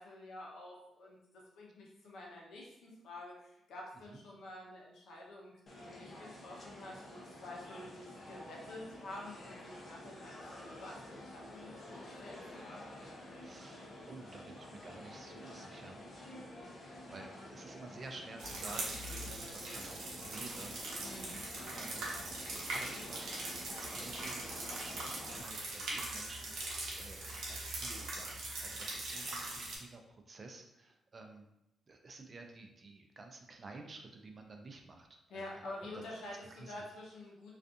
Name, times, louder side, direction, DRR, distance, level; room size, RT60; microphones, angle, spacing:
voice 1, 0.0-12.9 21.0-21.4 35.3-37.6, left 1 dB, 85° left, -3 dB, 0.7 m, -49 dB
sound 1, 5.7-25.4, left 1 dB, 45° left, 0.6 m, -50 dB
voice 2, 13.4-16.0 16.7-20.7 21.2-21.4 21.7-22.2 22.5-23.2 23.8-31.5 31.9-35.6 35.9-36.0 36.5-36.7, right 3 dB, 40° right, 3 dB, 0.4 m, -52 dB
sound 2, 18.4-29.8, right 2 dB, 85° right, 0.7 m, -41 dB
2.5 x 2.4 x 2.4 m, 0.85 s
cardioid pair, 105°, 0 cm